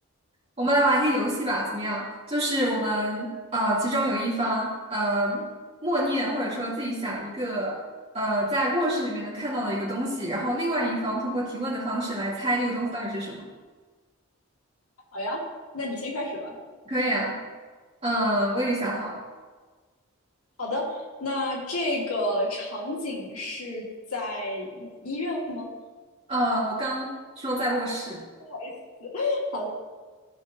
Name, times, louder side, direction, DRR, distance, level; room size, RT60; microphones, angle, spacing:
voice 1, 0.6-5.5 5.8-7.8 8.1-13.5 16.9-17.4 18.0-19.2 26.3-28.2, right 1 dB, 30° right, -7 dB, 2.6 m, -27 dB
voice 2, 15.7-16.5 20.6-23.9 24.1-25.7 28.5-29.7, left 1 dB, 80° left, -3 dB, 2.0 m, -30 dB
15.5 x 5.1 x 2.7 m, 1.4 s
head